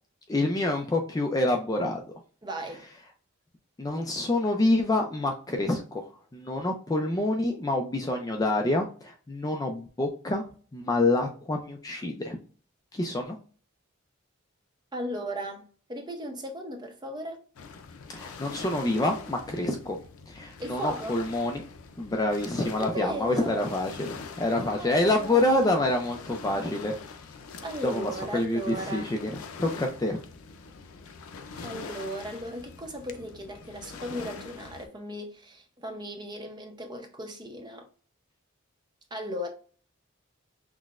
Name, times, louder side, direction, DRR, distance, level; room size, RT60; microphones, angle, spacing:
voice 1, 0.3-2.0 3.8-10.4 10.7-12.4 12.9-13.4 18.1-20.0 20.3-21.6 22.0-27.0 27.8-30.2, left 2 dB, 15° left, 0.3 m, -27 dB
voice 2, 2.4-2.9 14.9-17.4 20.6-21.2 22.8-23.7 24.6-25.8 27.6-29.1 31.6-37.9 39.1-39.5, equal, 20° right, 0.6 m, -36 dB
Waves surf, 17.6-34.9, left 5 dB, 90° left, 0.5 m, -44 dB
5.9 x 2.1 x 2.4 m
head